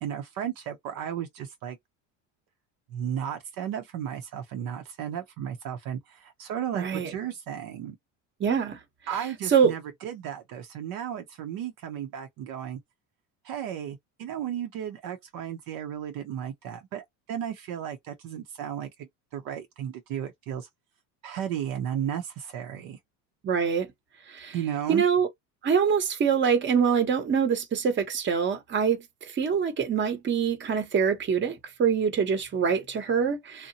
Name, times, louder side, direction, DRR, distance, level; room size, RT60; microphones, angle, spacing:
voice 1, 0.0-1.8 2.9-8.0 9.1-12.8 13.4-20.7 21.2-23.0 24.5-25.0, right 9 dB, 60° right, 0.7 m, -34 dB
voice 2, 6.7-7.1 8.4-8.8 9.5-9.7 23.4-23.9 24.3-24.5 24.9-25.3 25.6-33.7, right 6 dB, 30° right, 0.8 m, -25 dB
2.8 x 2.2 x 2.7 m
supercardioid pair, 115°, 39 cm